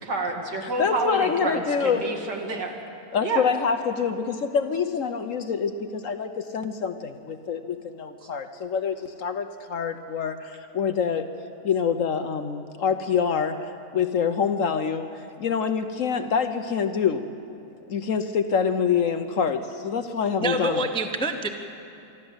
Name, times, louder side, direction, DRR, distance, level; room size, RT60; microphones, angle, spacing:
voice 1, 0.0-2.7 3.2-3.4, right 3 dB, 75° right, 1 dB, 2.8 m, -28 dB
voice 2, 0.6-2.2 3.1-11.3 11.6-13.6 13.9-17.3 17.9-20.9, left 6 dB, 55° left, 8 dB, 1.0 m, -26 dB
voice 3, 20.4-21.5, right 1 dB, 5° left, 6 dB, 0.5 m, -26 dB
24.5 x 13.0 x 7.9 m, 2.8 s
omnidirectional pair, 1.8 m